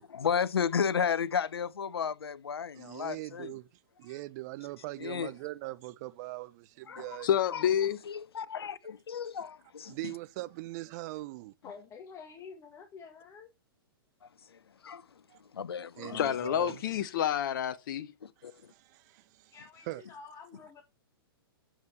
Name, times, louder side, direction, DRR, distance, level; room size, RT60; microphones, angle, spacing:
voice 1, 0.0-3.5 5.0-5.3 6.9-7.0 7.5-7.6 8.1-10.0 14.5-15.0 15.5-16.2 18.2-18.5, left 7 dB, 80° left, 1.0 m, -33 dB
voice 2, 2.7-3.7 4.0-7.3 9.9-11.5 15.3-15.4 16.0-16.8 18.4-19.6 19.9-20.0, right 19 dB, 45° right, 1.1 m, -41 dB
voice 3, 7.2-8.0 16.1-18.1, left 10 dB, 55° left, 1.1 m, -28 dB
voice 4, 11.6-13.5 19.5-20.8, left 5 dB, 25° left, 1.9 m, -49 dB
9.5 x 7.5 x 7.1 m
hypercardioid pair, 120°, 13 cm